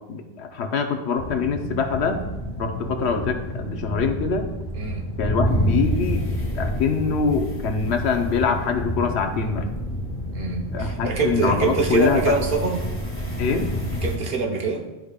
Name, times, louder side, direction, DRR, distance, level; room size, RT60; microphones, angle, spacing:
voice 1, 0.1-2.2 2.6-4.5 5.2-6.3 6.5-9.7 10.7-12.4 13.4-13.7, left 5 dB, 75° left, 5 dB, 1.1 m, -24 dB
sound 1, 1.2-14.2, equal, 10° left, 1.1 m, -28 dB
voice 2, 10.3-12.8 14.0-14.8, right 4 dB, 60° right, 2 dB, 1.1 m, -24 dB
12.0 x 5.1 x 2.4 m, 1.1 s
omnidirectional pair, 1.1 m